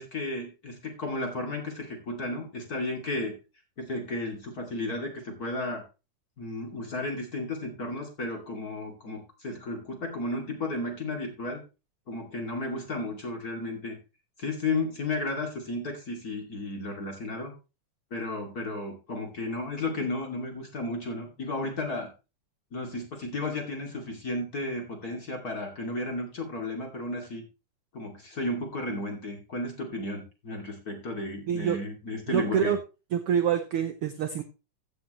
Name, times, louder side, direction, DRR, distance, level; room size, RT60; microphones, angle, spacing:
voice 1, 0.0-3.3 3.8-5.8 6.4-11.6 12.1-14.0 14.4-17.5 18.1-22.1 22.7-27.4 27.9-32.8, left 2 dB, 30° left, 2 dB, 2.6 m, -33 dB
voice 2, 31.5-31.8 32.3-32.8 33.1-34.4, right 8 dB, 75° right, 8 dB, 1.3 m, -26 dB
15.0 x 7.9 x 3.1 m, 0.30 s
omnidirectional pair, 3.6 m